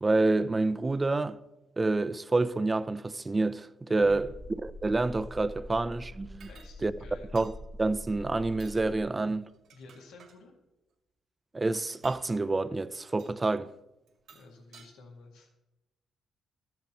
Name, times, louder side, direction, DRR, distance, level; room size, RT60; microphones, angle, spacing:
voice 1, 0.0-1.4 1.8-4.3 4.6-6.5 6.8-6.9 7.3-7.5 7.8-9.4 11.5-13.7, right 2 dB, 20° right, 0.5 m, -28 dB
voice 2, 3.9-4.2 6.5-7.3 9.7-10.5 14.3-15.5, left 3 dB, 85° left, 1.9 m, -51 dB
sound 1, 4.0-9.0, left 1 dB, 65° left, 3.1 m, -45 dB
sound 2, 6.4-6.7 7.4-7.6 8.5-8.8 9.5-10.4 11.9-12.3 13.2-13.4 14.1-14.9, right 6 dB, 75° right, 2.3 m, -54 dB
13.5 x 10.5 x 3.0 m
cardioid pair, 90°, 0 cm